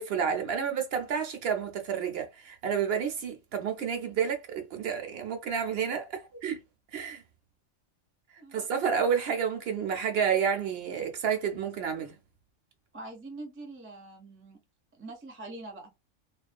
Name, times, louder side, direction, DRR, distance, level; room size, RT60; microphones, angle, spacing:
voice 1, 0.0-6.6 6.9-7.2 8.5-12.2, right 7 dB, 65° right, 0.7 m, -30 dB
voice 2, 8.4-8.7 12.9-14.6 14.9-15.9, right 2 dB, 20° right, 0.3 m, -44 dB
2.4 x 2.1 x 2.4 m
omnidirectional pair, 1.2 m